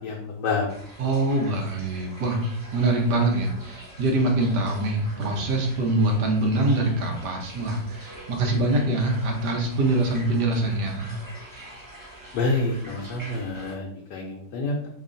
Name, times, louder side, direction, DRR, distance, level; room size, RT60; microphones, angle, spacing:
voice 1, 0.0-0.7 12.3-14.9, left 3 dB, 75° left, -2 dB, 1.2 m, -28 dB
sound 1, 0.7-13.7, right 1 dB, 30° right, 0.3 m, -45 dB
voice 2, 1.0-2.4 2.7-11.1, right 2 dB, 75° right, 1 dB, 1.4 m, -24 dB
3.4 x 2.4 x 3.8 m, 0.68 s
omnidirectional pair, 1.9 m